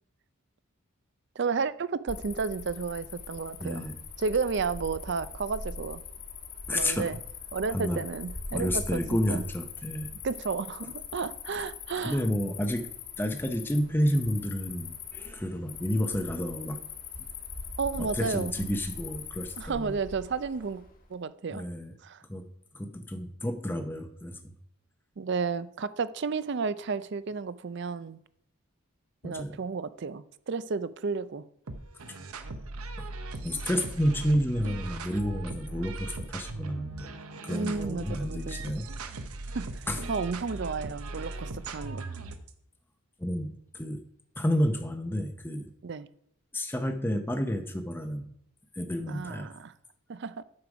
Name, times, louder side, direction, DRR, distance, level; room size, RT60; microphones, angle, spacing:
voice 1, 1.4-3.9 4.2-6.0 6.7-7.2 7.5-9.4 10.2-12.2 17.8-18.7 19.6-20.8 21.1-21.6 22.0-22.2 25.2-28.2 29.2-31.4 37.5-38.7 39.5-42.1 45.8-46.1 49.1-49.7 50.1-50.4, right 5 dB, 50° right, 0.4 m, -32 dB
Cricket, 2.1-21.0, left 5 dB, 40° left, 1.4 m, -42 dB
voice 2, 3.6-4.0 6.7-7.1 7.7-8.0 8.5-10.1 12.0-12.9 13.2-16.8 18.0-20.0 21.5-21.9 22.3-22.4 22.7-24.5 29.2-29.6 33.0-33.1 33.4-37.1 37.4-38.9 39.9-40.0 43.2-44.0 44.4-45.7 46.5-48.3 48.7-49.5, equal, 10° left, 0.7 m, -30 dB
sound 1, 31.7-42.5, right 2 dB, 85° right, 0.8 m, -39 dB
9.6 x 6.8 x 4.9 m
head